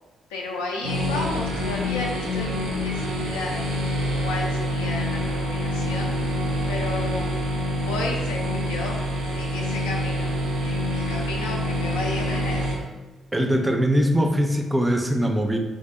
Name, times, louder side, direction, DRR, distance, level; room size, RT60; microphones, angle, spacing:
voice 1, 0.3-3.8 4.2-6.3 6.7-7.3 7.8-9.0 9.3-12.8, left 2 dB, 75° left, -1 dB, 0.4 m, -33 dB
sound 1, 0.8-12.7, equal, 75° right, 0.6 m, -26 dB
voice 2, 13.3-15.6, equal, 15° right, 4 dB, 0.4 m, -21 dB
3.7 x 2.6 x 2.4 m, 1.2 s
figure-of-eight pair, 40°, 0 cm